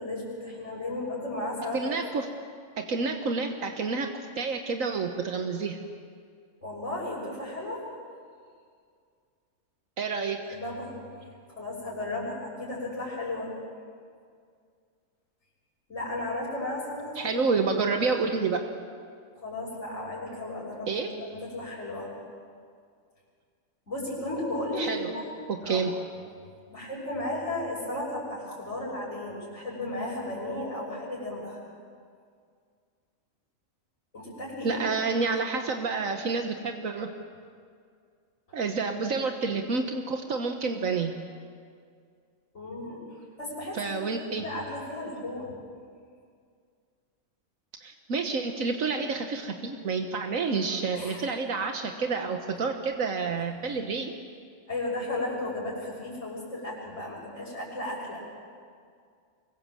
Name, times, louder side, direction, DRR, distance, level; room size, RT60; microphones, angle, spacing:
voice 1, 0.0-1.9 6.6-7.9 10.4-11.0 11.6-13.5 15.9-17.8 19.4-22.1 23.9-25.2 25.6-25.9 26.7-31.6 34.1-35.0 42.5-45.5 51.0-51.2 54.7-58.2, left 1 dB, 60° left, -8 dB, 6.2 m, -34 dB
voice 2, 1.7-2.3 2.8-4.1 4.4-5.8 10.0-10.4 17.2-18.6 20.9-21.1 24.8-25.1 25.5-25.9 34.6-37.1 38.5-41.1 43.7-44.4 47.8-54.1, right 4 dB, 80° right, 4 dB, 1.7 m, -29 dB
24.5 x 22.5 x 7.6 m, 2.2 s
omnidirectional pair, 1.4 m